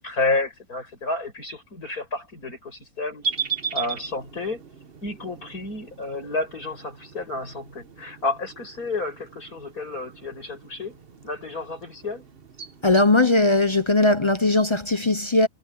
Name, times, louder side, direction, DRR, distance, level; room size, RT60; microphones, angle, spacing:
voice 1, 0.0-3.2 3.7-4.6 5.0-11.0 11.2-12.2, left 3 dB, 65° left, 7.9 m, -30 dB
sound 1, 3.2-13.1, right 6 dB, 40° right, 1.4 m, -37 dB
voice 2, 12.8-15.5, left 2 dB, 25° left, 0.7 m, -19 dB
omnidirectional pair, 1.7 m